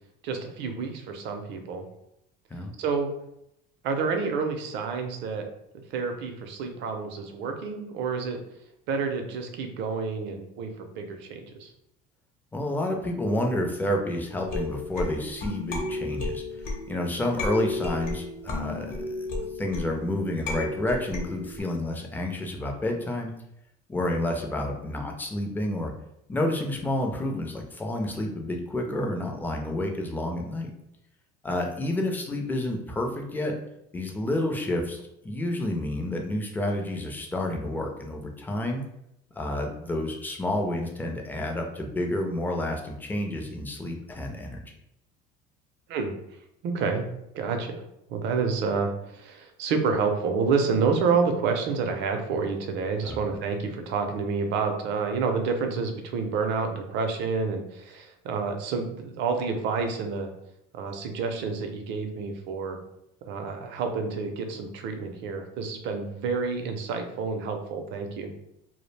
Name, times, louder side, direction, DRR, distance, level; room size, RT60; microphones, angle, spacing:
voice 1, 0.2-1.9 2.8-3.1 3.8-5.4 5.9-8.4 8.9-11.7 45.9-46.1 46.6-47.0 47.3-60.3 60.7-62.8 63.3-68.3, right 5 dB, 60° right, 5 dB, 0.5 m, -29 dB
voice 2, 12.5-16.4 16.9-23.3 23.9-25.9 26.3-30.7 31.4-33.6 33.9-38.8 39.4-44.7 53.0-53.2, left 1 dB, 10° left, 2 dB, 0.4 m, -29 dB
sound 1, 14.4-21.6, left 2 dB, 45° left, 0.8 m, -33 dB
2.3 x 2.0 x 3.2 m, 0.80 s
cardioid pair, 125°, 20 cm